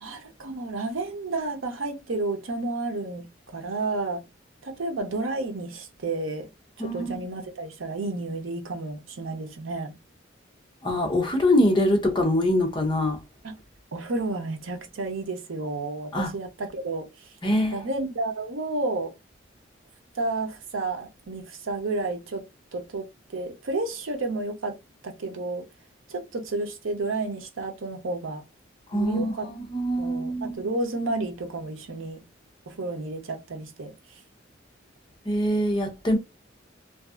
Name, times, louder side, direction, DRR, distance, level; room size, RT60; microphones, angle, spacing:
voice 1, 0.0-3.3 3.5-4.2 4.6-6.5 6.8-9.9 13.4-13.5 13.9-17.1 17.7-19.1 20.2-22.4 22.7-23.1 23.3-24.8 25.0-25.6 26.1-28.4 28.9-29.5 30.0-32.2 32.7-33.9, right 2 dB, 85° right, 0.7 m, -31 dB
voice 2, 6.8-7.2 10.8-13.2 16.1-16.3 17.4-17.9 28.9-30.7 35.3-36.2, left 1 dB, 25° left, 0.6 m, -24 dB
2.6 x 2.3 x 2.3 m
head